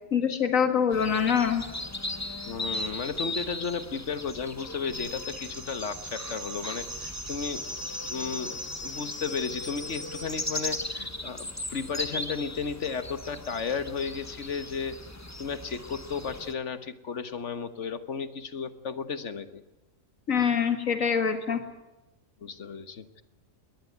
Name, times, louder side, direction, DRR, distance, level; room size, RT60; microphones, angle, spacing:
voice 1, 0.1-1.6 20.3-21.6, left 7 dB, 80° left, 8 dB, 2.3 m, -24 dB
sound 1, 0.9-16.5, left 2 dB, 15° left, 1.2 m, -38 dB
voice 2, 2.5-7.7 8.1-15.0 15.4-19.6 22.4-23.2, left 5 dB, 65° left, 12 dB, 1.6 m, -34 dB
sound 2, 4.9-10.8, equal, 65° right, 5.5 m, -39 dB
21.5 x 18.5 x 9.4 m, 1.0 s
omnidirectional pair, 1.3 m